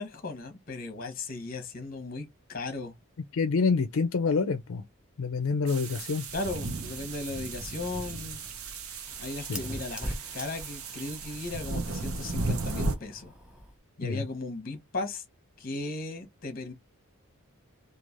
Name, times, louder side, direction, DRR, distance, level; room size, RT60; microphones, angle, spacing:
voice 1, 0.0-2.9 6.3-8.4 9.2-13.3 14.0-15.2 15.6-16.7, left 3 dB, 40° left, 0.8 m, -36 dB
voice 2, 3.3-4.8 5.2-6.3 9.5-9.6 14.0-14.2, left 4 dB, 70° left, 0.4 m, -27 dB
sound 1, 5.7-13.0, right 3 dB, 80° right, 0.7 m, -35 dB
Fire, 8.5-13.8, equal, 5° right, 0.4 m, -43 dB
3.1 x 2.4 x 2.5 m
head